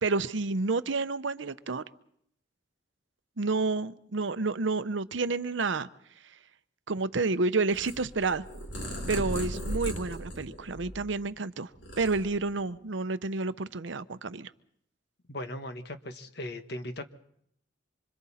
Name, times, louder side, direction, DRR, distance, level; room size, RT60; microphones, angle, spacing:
voice 1, 0.0-1.8 3.4-5.9 6.9-8.4 9.1-11.7 12.0-14.5, right 3 dB, 75° right, 13 dB, 0.8 m, -29 dB
Purr, 7.7-11.3 11.6-12.7, equal, 75° left, 6.3 m, -37 dB
voice 2, 15.3-17.1, left 1 dB, 60° left, 8 dB, 1.4 m, -38 dB
26.0 x 26.0 x 4.3 m, 0.71 s
head